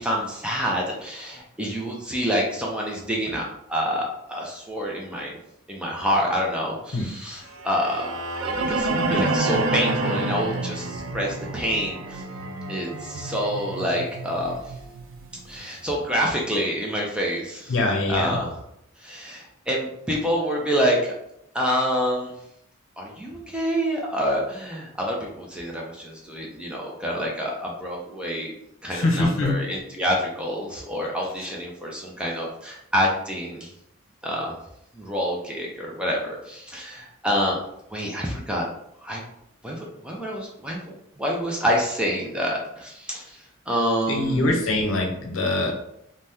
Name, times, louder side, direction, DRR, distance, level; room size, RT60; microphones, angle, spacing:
voice 1, 0.0-5.4 5.7-8.1 8.4-12.2 12.7-14.6 15.5-17.8 18.1-18.6 19.0-21.0 21.5-22.3 23.0-28.5 28.8-33.7 34.2-34.5 34.9-37.6 37.9-38.7 39.0-39.2 39.6-40.8 41.2-43.4 43.7-44.6, equal, 5° right, -2 dB, 0.4 m, -27 dB
sound 1, 7.6-15.7, right 2 dB, 65° right, 0.4 m, -29 dB
voice 2, 17.7-18.4 28.9-29.6 44.1-45.7, left 2 dB, 75° left, 1 dB, 0.7 m, -23 dB
2.7 x 2.1 x 3.4 m, 0.77 s
head